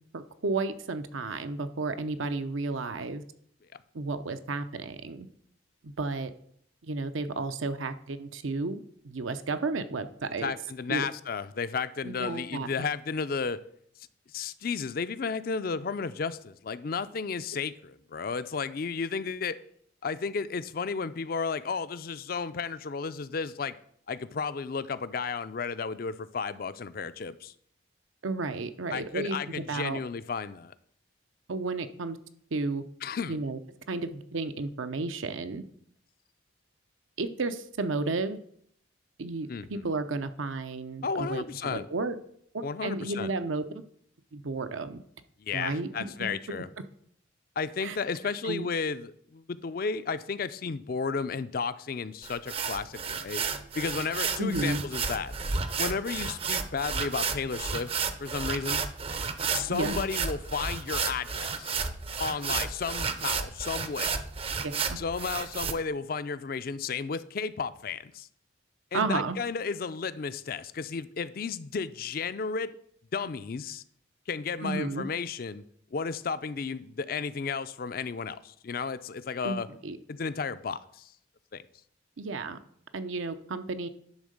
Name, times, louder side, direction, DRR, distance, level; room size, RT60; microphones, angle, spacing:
voice 1, 0.1-3.2 3.9-5.3 5.8-6.3 6.8-10.5 10.9-11.0 12.0-12.7 28.2-30.0 31.5-32.2 32.5-32.8 33.3-33.6 33.9-35.6 37.2-38.4 39.2-42.2 42.5-43.8 44.3-45.0 45.5-46.4 47.8-48.0 48.4-48.7 54.4-54.8 59.7-60.0 64.6-65.0 68.9-69.4 74.6-75.1 79.4-80.0 82.2-82.6 82.9-83.9, right 3 dB, 80° right, 10 dB, 0.7 m, -32 dB
voice 2, 10.4-13.6 14.3-19.6 20.0-23.8 24.1-27.5 28.9-30.7 33.0-33.4 39.5-39.8 41.0-41.9 42.6-43.3 45.4-46.7 47.6-53.4 53.7-55.3 55.8-57.9 58.2-58.8 59.5-61.8 62.2-64.1 65.0-68.3 68.9-72.7 73.1-73.8 74.3-75.6 75.9-79.7 80.1-81.1 81.5-81.6, left 5 dB, 45° left, 14 dB, 0.4 m, -33 dB
sound 1, 52.2-65.7, right 5 dB, 30° right, 0.5 m, -32 dB
10.5 x 3.7 x 6.5 m, 0.66 s
head